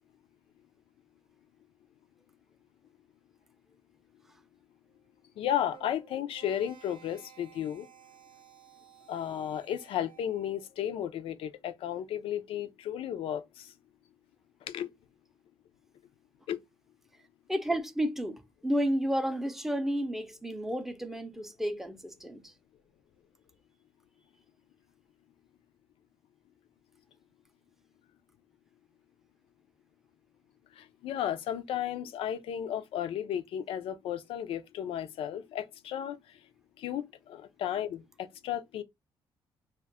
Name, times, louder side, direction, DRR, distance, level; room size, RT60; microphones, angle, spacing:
voice 1, 5.4-7.9 9.1-13.7 14.7-14.9 16.5-16.6 30.8-36.2 36.8-38.8, left 10 dB, 80° left, 0.4 m, -34 dB
sound 1, 5.6-10.7, right 11 dB, 65° right, 0.6 m, -56 dB
voice 2, 17.5-22.5, equal, 5° right, 0.5 m, -31 dB
2.4 x 2.2 x 3.4 m
cardioid pair, 110°, 9 cm